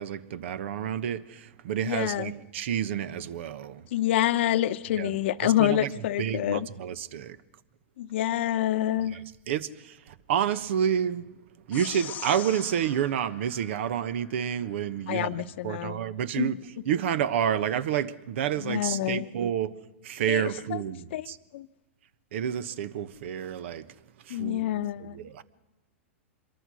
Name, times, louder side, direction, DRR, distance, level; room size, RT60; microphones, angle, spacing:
voice 1, 0.0-3.9 5.0-5.1 5.4-5.9 6.2-7.4 9.0-11.3 11.7-16.5 16.8-19.7 20.0-21.4 22.3-23.9 24.2-25.4, right 9 dB, 65° right, 1.2 m, -29 dB
voice 2, 1.8-2.3 3.9-6.7 8.0-9.2 15.1-16.0 16.4-16.5 18.6-19.3 20.3-20.8 21.1-21.3 21.5-21.7 24.3-25.2, left 12 dB, 60° left, 1.0 m, -27 dB
sound 1, 11.7-14.4, left 10 dB, 25° left, 0.8 m, -42 dB
26.0 x 22.5 x 6.4 m
hypercardioid pair, 130°, 7 cm